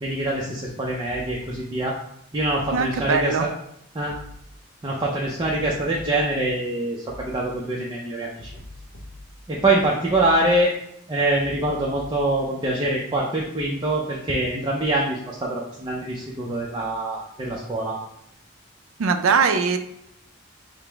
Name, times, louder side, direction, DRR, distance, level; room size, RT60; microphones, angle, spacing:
voice 1, 0.0-2.0 2.3-3.5 3.9-4.1 4.8-8.5 9.5-10.7 11.1-18.0, right 1 dB, 20° right, -3 dB, 0.4 m, -24 dB
sound 1, 1.1-1.4 2.4-3.2 4.1-4.4 5.4-6.3 7.1-7.4 8.4-9.3 10.1-10.4 11.4-12.3, left 1 dB, 65° left, 0.7 m, -42 dB
voice 2, 2.7-3.4 19.0-19.8, right 5 dB, 80° right, 8 dB, 0.4 m, -21 dB
4.9 x 2.0 x 3.3 m, 0.76 s
head